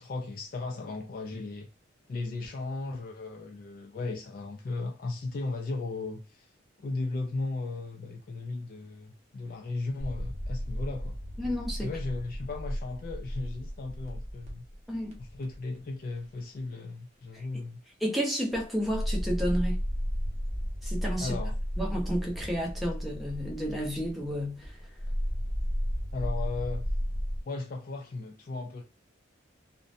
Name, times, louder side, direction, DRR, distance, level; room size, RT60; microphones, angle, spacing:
voice 1, 0.0-1.7 2.1-6.5 6.8-11.2 11.8-14.7 15.2-17.8 21.2-21.5 26.1-26.9 27.4-28.8, left 3 dB, 45° left, 0.3 m, -36 dB
sound 1, 10.0-15.8 16.4-16.6 18.5-27.4, equal, 35° right, 0.6 m, -34 dB
voice 2, 11.4-11.9 14.9-15.1 17.3-17.4 18.0-19.8 20.8-21.4 21.8-24.8, equal, ahead, 0.6 m, -31 dB
2.5 x 2.1 x 2.5 m
head